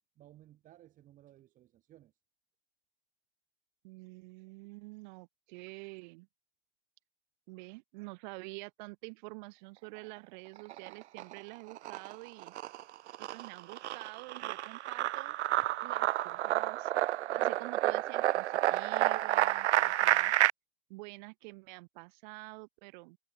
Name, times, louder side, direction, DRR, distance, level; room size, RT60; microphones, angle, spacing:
voice 1, 0.2-2.1 15.6-15.9, right 13 dB, 20° right, 4.6 m, -59 dB
voice 2, 3.8-6.3 7.5-12.5 13.2-15.4 15.8-16.9 17.3-20.3 20.9-23.2, right 27 dB, 40° right, 6.0 m, -47 dB
sound 1, 10.6-11.4 11.7-20.5, right 14 dB, 75° right, 1.4 m, -30 dB
supercardioid pair, 170°, 35 cm